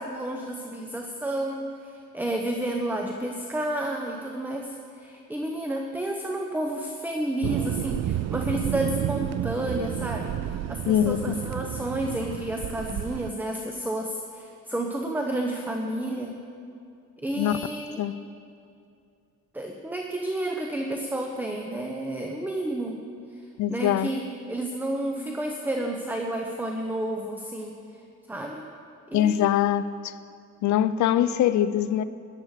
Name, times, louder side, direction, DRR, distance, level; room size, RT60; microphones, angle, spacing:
voice 1, 0.0-16.4 17.2-18.0 19.5-23.0 23.3-27.7 28.3-28.7 29.1-29.5, right 1 dB, 5° right, 1.1 m, -31 dB
Thunder, 7.4-13.3, right 11 dB, 60° right, 0.5 m, -31 dB
voice 2, 10.9-11.2 17.4-17.5 18.0-18.1 23.6-24.1 29.1-30.1 30.6-32.0, left 11 dB, 70° left, 0.6 m, -23 dB
16.0 x 11.5 x 5.0 m
cardioid pair, 90°, 30 cm